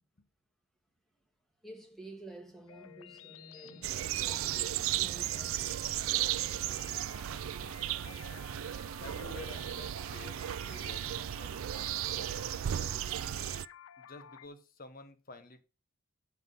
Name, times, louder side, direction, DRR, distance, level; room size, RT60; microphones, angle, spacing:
voice 1, 1.6-6.3, right 1 dB, ahead, 1.8 m, -51 dB
sound 1, 2.7-14.5, left 9 dB, 75° left, 0.4 m, -53 dB
sound 2, 3.6-12.0, right 2 dB, 40° right, 0.9 m, -59 dB
sound 3, 3.8-13.7, right 12 dB, 75° right, 0.3 m, -35 dB
voice 2, 8.0-8.5 9.0-13.0 14.0-15.6, left 3 dB, 45° left, 1.2 m, -51 dB
7.9 x 5.9 x 5.3 m
head